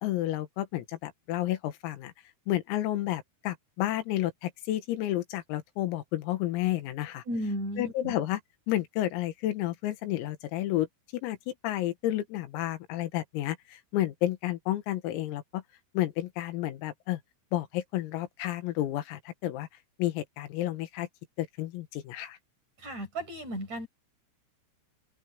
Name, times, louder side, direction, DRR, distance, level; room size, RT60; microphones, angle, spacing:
voice 1, 0.0-2.1 2.5-7.2 7.8-8.4 8.7-10.9 11.1-15.6 15.9-17.2 17.5-19.7 20.0-21.1 21.4-22.4, left 14 dB, 85° left, 4.4 m, -31 dB
voice 2, 7.3-8.2 22.8-23.9, equal, 35° right, 7.9 m, -34 dB
omnidirectional pair, 6.0 m